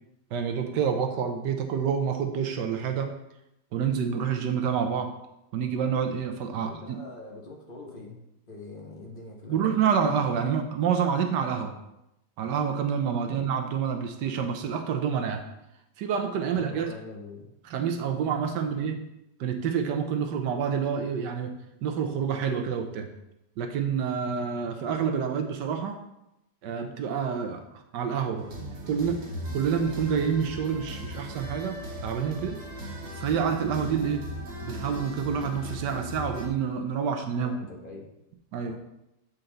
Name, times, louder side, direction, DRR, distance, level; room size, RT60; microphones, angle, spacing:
voice 1, 0.3-3.1 3.7-5.1 5.5-7.0 9.5-11.7 12.4-15.4 16.0-16.9 17.6-19.0 19.4-21.5 21.8-23.1 23.6-26.0 26.6-28.5 28.9-29.2 29.5-32.6 33.2-34.2 34.6-37.5 38.5-38.7, right 7 dB, 70° right, 6 dB, 1.3 m, -28 dB
voice 2, 6.5-8.2 8.5-9.7 13.2-13.4 16.5-17.5 18.6-18.9 37.4-38.1 38.6-38.8, left 2 dB, 35° left, -1 dB, 1.0 m, -43 dB
sound 1, 28.4-36.5, equal, 90° right, 1.9 m, -38 dB
7.8 x 4.4 x 3.8 m, 0.86 s
omnidirectional pair, 2.0 m